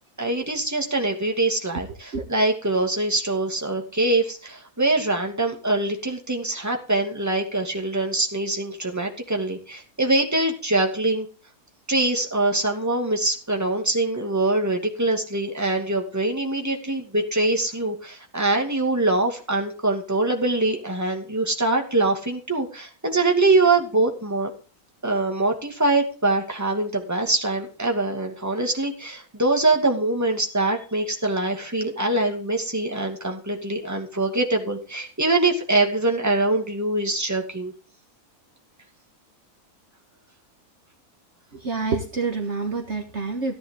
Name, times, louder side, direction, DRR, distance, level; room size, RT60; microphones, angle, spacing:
voice 1, 0.2-11.3 11.9-24.5 25.0-37.7, right 2 dB, 10° right, 2 dB, 2.4 m, -23 dB
voice 2, 41.5-43.5, right 4 dB, 50° right, 4 dB, 1.9 m, -27 dB
15.0 x 10.0 x 3.8 m, 0.36 s
omnidirectional pair, 1.6 m